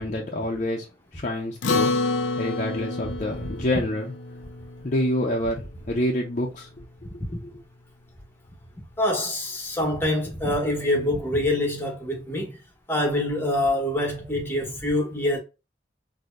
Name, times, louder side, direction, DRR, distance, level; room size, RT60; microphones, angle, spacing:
voice 1, 0.0-1.9 2.3-4.1 4.8-6.7 7.1-7.6, left 1 dB, 40° left, 0.7 m, -27 dB
Acoustic guitar, 1.6-6.3, left 3 dB, 90° left, 0.5 m, -29 dB
voice 2, 9.0-12.6 12.9-15.4, left 1 dB, 10° left, 1.1 m, -25 dB
4.4 x 2.8 x 2.5 m
head